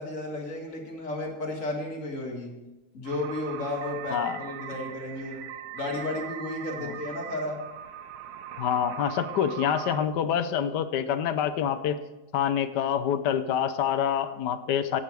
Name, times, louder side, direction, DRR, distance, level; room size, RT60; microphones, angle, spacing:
voice 1, 0.0-2.5 2.9-5.4 5.7-7.6, left 2 dB, 50° left, 0 dB, 2.3 m, -33 dB
sound 1, 3.0-10.1, right 9 dB, 70° right, 1.2 m, -40 dB
voice 2, 8.6-12.0 12.3-15.0, left 9 dB, 85° left, 10 dB, 1.4 m, -26 dB
17.0 x 5.9 x 4.8 m, 1.1 s
omnidirectional pair, 1.8 m